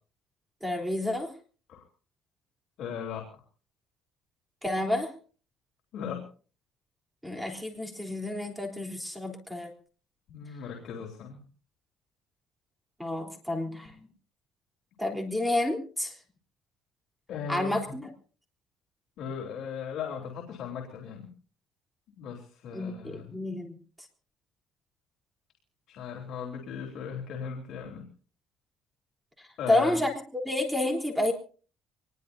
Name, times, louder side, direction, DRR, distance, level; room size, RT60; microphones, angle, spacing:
voice 1, 0.6-1.3 4.6-5.1 7.2-9.7 13.0-14.1 15.0-16.1 17.5-18.1 22.7-23.7 29.7-30.1 30.5-31.3, left 1 dB, ahead, 3 dB, 3.6 m, -29 dB
voice 2, 2.8-3.4 5.9-6.3 10.3-11.4 17.3-17.8 19.2-21.3 22.2-23.3 25.9-28.1 29.6-30.0, left 7 dB, 60° left, 2 dB, 3.5 m, -37 dB
25.0 x 20.5 x 2.7 m, 0.40 s
cardioid pair, 145°, 0 cm